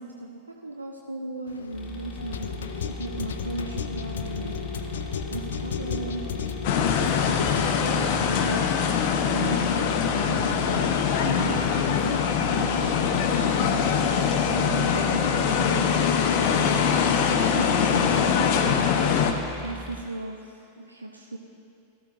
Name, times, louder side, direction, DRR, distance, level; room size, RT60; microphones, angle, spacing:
voice 1, 0.0-4.6 5.3-6.2 6.8-8.6 9.2-10.9 11.2-12.3 12.5-13.5 14.5-18.7 19.6-21.4, right 2 dB, 80° right, 1 dB, 0.7 m, -36 dB
sound 1, 1.5-7.7, left 7 dB, 65° left, 0.5 m, -33 dB
sound 2, 1.7-20.0, left 1 dB, 20° left, 1.7 m, -39 dB
sound 3, 6.6-19.3, left 7 dB, 45° left, 0.8 m, -23 dB
17.0 x 13.0 x 2.6 m, 2.5 s
figure-of-eight pair, 90°, 0 cm